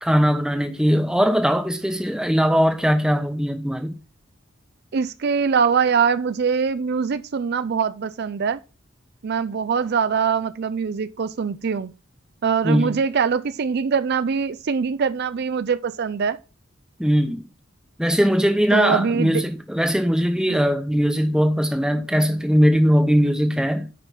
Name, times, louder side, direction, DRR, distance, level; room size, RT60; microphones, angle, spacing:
voice 1, 0.0-3.9 12.6-13.0 17.0-17.4 18.0-23.9, equal, 5° right, 0.9 m, -20 dB
voice 2, 4.9-8.6 9.2-11.9 12.4-16.4 18.7-19.4, right 6 dB, 55° right, 0.4 m, -23 dB
9.3 x 5.3 x 4.1 m
head